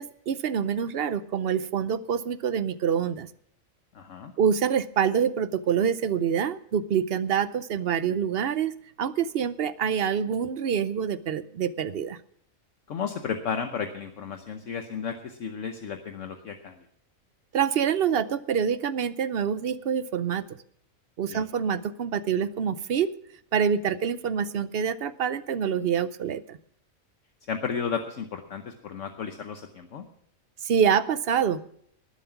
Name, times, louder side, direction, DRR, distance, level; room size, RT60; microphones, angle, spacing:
voice 1, 0.0-3.3 4.4-12.2 17.5-20.4 21.2-23.1 23.5-26.6 30.6-31.6, right 7 dB, 55° right, 14 dB, 0.7 m, -26 dB
voice 2, 3.9-4.3 12.9-16.8 21.3-21.4 27.5-30.1, left 6 dB, 65° left, 5 dB, 1.2 m, -33 dB
20.0 x 7.4 x 5.8 m, 0.65 s
omnidirectional pair, 1.4 m